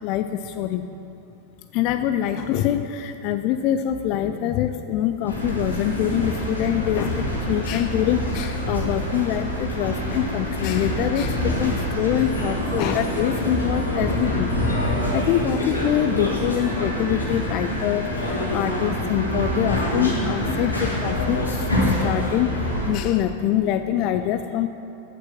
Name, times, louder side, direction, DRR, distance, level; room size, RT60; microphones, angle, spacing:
voice 1, 0.0-0.9 1.7-14.5 14.9-21.7 22.0-24.7, left 11 dB, 40° left, 8 dB, 0.4 m, -25 dB
sound 1, 5.2-22.9, left 1 dB, 80° left, 2.0 m, -25 dB
8.4 x 7.5 x 7.0 m, 2.6 s
figure-of-eight pair, 90°, 0 cm